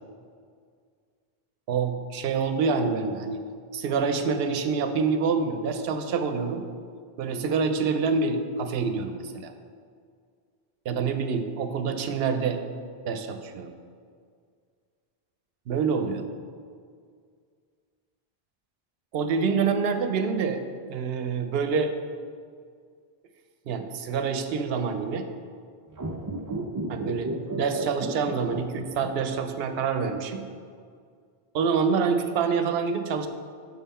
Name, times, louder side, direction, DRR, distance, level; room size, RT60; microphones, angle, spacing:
voice 1, 1.7-3.4 3.7-6.6 7.2-9.5 10.9-12.6 13.0-13.7 15.7-16.2 19.1-20.6 20.9-21.9 23.7-25.3 26.9-30.4 31.5-33.3, right 5 dB, 75° right, 7 dB, 0.8 m, -26 dB
sound 1, 25.9-29.3 29.6-29.7, right 2 dB, 35° right, 0.3 m, -32 dB
6.4 x 5.5 x 4.2 m, 2.1 s
omnidirectional pair, 1.0 m